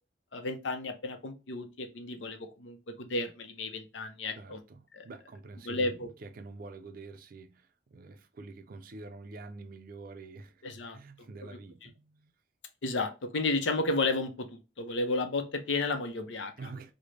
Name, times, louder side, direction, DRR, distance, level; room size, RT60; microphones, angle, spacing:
voice 1, 0.3-4.6 4.9-5.1 5.6-6.1 10.6-11.0 11.4-11.9 12.8-16.7, left 2 dB, 80° left, 0.6 m, -33 dB
voice 2, 4.3-12.3 16.6-16.9, right 3 dB, 50° right, 0.4 m, -47 dB
3.2 x 2.1 x 3.7 m
head